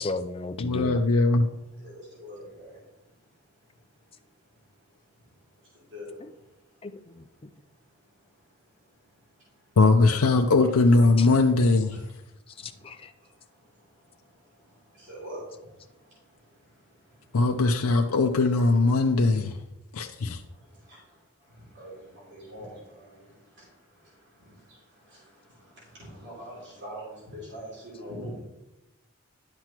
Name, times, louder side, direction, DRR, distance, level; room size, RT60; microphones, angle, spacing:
voice 1, 0.0-1.0 6.8-7.5 11.2-11.3 12.6-13.1, left 3 dB, 25° left, 0.4 m, -35 dB
voice 2, 0.6-1.5 9.8-12.0 17.3-19.6 19.9-20.4, left 3 dB, 80° left, 0.6 m, -21 dB
voice 3, 1.8-2.8 5.9-6.2 11.3-11.4 15.1-15.4 18.5-18.7 21.7-21.9 22.3-22.7 23.0-23.1 26.1-28.4, equal, 55° right, 3.4 m, -41 dB
11.0 x 7.6 x 3.0 m
head